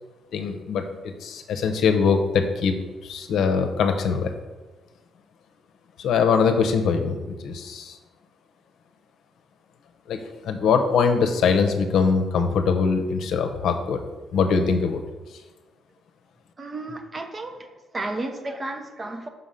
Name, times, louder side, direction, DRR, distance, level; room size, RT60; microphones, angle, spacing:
voice 1, 0.3-2.7 3.0-4.3 6.0-8.0 10.1-14.0 14.3-15.0, left 5 dB, 75° left, 6 dB, 0.7 m, -22 dB
voice 2, 16.6-19.3, right 2 dB, 30° right, 6 dB, 0.8 m, -33 dB
5.6 x 3.8 x 5.6 m, 1.2 s
cardioid pair, 90°, 0 cm